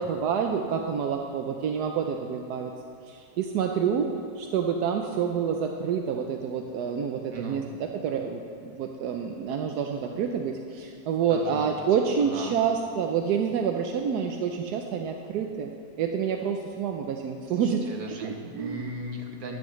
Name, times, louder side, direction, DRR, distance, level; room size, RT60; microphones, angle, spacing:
voice 1, 0.0-2.7 3.1-4.1 4.4-15.7 16.0-17.8 18.2-18.9, right 7 dB, 80° right, 4 dB, 1.2 m, -28 dB
voice 2, 11.3-11.7 12.3-12.6 17.5-19.6, right 2 dB, 60° right, 2 dB, 1.7 m, -37 dB
14.5 x 12.0 x 3.2 m, 2.6 s
omnidirectional pair, 1.7 m